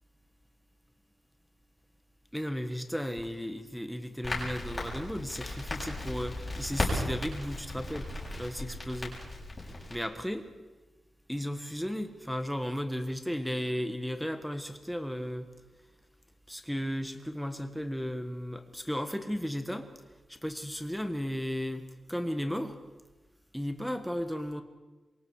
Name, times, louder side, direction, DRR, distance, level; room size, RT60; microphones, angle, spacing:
voice 1, 2.3-9.2 9.7-10.5 11.3-15.5 16.5-19.9 20.3-22.8 23.5-24.6, equal, ahead, 7 dB, 1.5 m, -35 dB
Crackle, 4.2-10.0, left 1 dB, 15° left, 7.1 m, -36 dB
27.0 x 24.0 x 4.9 m, 1.2 s
wide cardioid pair, 175°, 0 cm